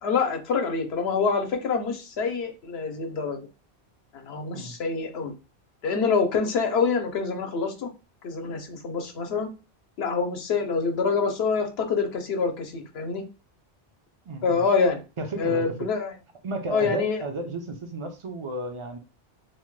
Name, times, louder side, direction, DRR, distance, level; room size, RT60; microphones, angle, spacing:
voice 1, 0.0-3.5 4.2-5.3 5.8-7.9 8.2-9.5 10.0-13.2 14.4-15.0 15.4-16.1 16.7-17.2, left 5 dB, 75° left, 4 dB, 0.9 m, -26 dB
voice 2, 14.3-14.6 15.2-15.6 16.4-19.0, right 2 dB, 45° right, 4 dB, 0.4 m, -33 dB
2.7 x 2.1 x 3.0 m, 0.30 s
omnidirectional pair, 1.1 m